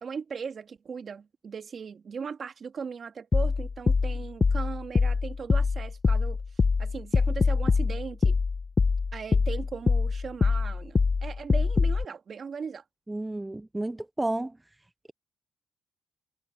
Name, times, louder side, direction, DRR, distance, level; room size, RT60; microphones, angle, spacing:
voice 1, 0.0-6.4 6.8-8.4 9.1-12.8, right 6 dB, 45° right, 1.9 m, -38 dB
sound 1, 3.3-12.0, left 4 dB, 35° left, 0.9 m, -24 dB
voice 2, 13.1-14.5, right 2 dB, 10° right, 0.5 m, -31 dB
cardioid pair, 90°, 0 cm